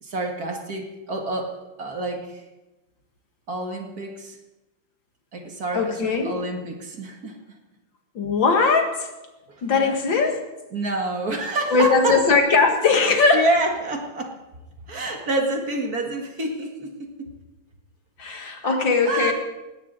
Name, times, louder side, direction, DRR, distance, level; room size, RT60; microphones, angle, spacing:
voice 1, 0.0-1.5 1.8-2.4 3.5-4.4 5.3-7.4 9.5-10.3 10.7-12.2 13.3-14.4 14.9-17.3 18.6-19.3, right 2 dB, 50° right, 3 dB, 2.4 m, -28 dB
voice 2, 5.7-6.3 8.1-9.1 9.6-10.3 11.7-13.6 18.2-19.3, left 4 dB, 65° left, 4 dB, 2.7 m, -20 dB
19.5 x 17.0 x 4.1 m, 1.0 s
omnidirectional pair, 2.2 m